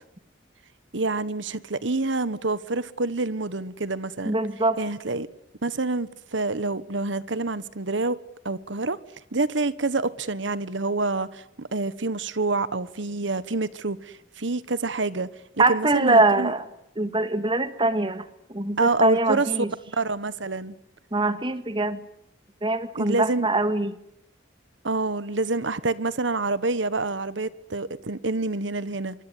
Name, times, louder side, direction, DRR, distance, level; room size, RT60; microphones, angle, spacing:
voice 1, 0.9-4.3 4.8-5.3 5.6-8.2 8.4-9.0 9.3-15.3 15.7-16.5 18.8-19.5 19.9-20.7 23.0-23.5 24.8-29.1, right 3 dB, 70° right, 1.3 m, -27 dB
voice 2, 4.2-4.8 15.6-16.7 17.0-19.7 21.1-22.0 22.6-24.0, right 2 dB, 25° right, 1.8 m, -23 dB
25.0 x 24.0 x 9.8 m
head